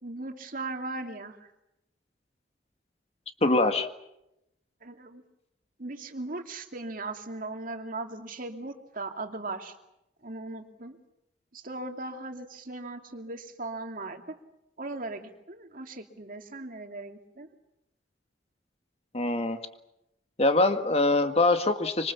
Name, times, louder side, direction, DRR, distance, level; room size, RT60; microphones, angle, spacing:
voice 1, 0.0-1.5 4.8-5.2 5.8-9.8 10.2-11.0 11.5-14.4 14.8-17.5, right 2 dB, 50° right, 5 dB, 2.6 m, -38 dB
voice 2, 3.4-3.9 19.1-19.6 20.4-22.1, left 2 dB, 35° left, 7 dB, 1.9 m, -23 dB
26.0 x 26.0 x 7.3 m, 0.86 s
head